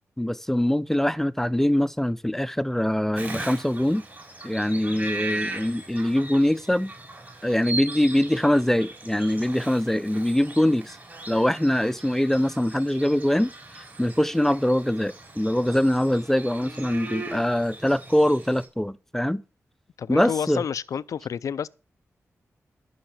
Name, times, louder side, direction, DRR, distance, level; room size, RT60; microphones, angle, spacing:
voice 1, 0.2-4.0 4.4-6.9 7.4-11.0 11.3-19.4 20.1-20.6, left 1 dB, 5° left, 0.6 m, -23 dB
Bird vocalization bird call bird song, 3.2-18.7, right 2 dB, 35° right, 4.7 m, -38 dB
voice 2, 20.0-21.7, left 7 dB, 80° left, 0.5 m, -29 dB
13.0 x 5.8 x 7.4 m
cardioid pair, 70°, 6 cm